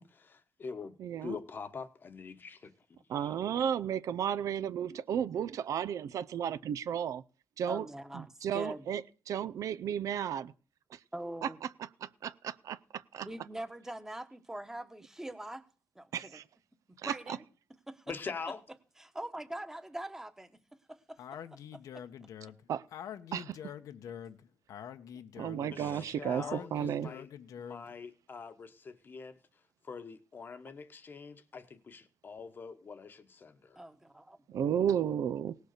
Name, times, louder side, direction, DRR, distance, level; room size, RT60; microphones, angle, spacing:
voice 1, 0.0-2.7 3.2-3.3 18.1-18.6 25.7-27.3 27.6-29.4 29.8-33.8, left 5 dB, 35° left, 1.1 m, -44 dB
voice 2, 1.0-1.4 3.1-7.2 7.6-7.8 8.1-9.0 9.3-10.5 10.9-11.0 11.4-11.5 12.0-13.3 16.1-16.4 17.0-17.1 22.7-22.8 23.3-23.7 25.4-27.1 34.5-35.6, right 9 dB, 70° right, 0.5 m, -33 dB
voice 3, 7.7-8.9 11.1-11.6 13.2-15.6 15.9-16.4 16.9-17.4 17.9-18.1 19.0-20.6 20.9-22.0 33.7-34.4, right 1 dB, 10° right, 1.2 m, -43 dB
Speech, 21.2-27.9, left 9 dB, 75° left, 1.0 m, -46 dB
18.0 x 6.6 x 6.6 m
wide cardioid pair, 165°, 6 cm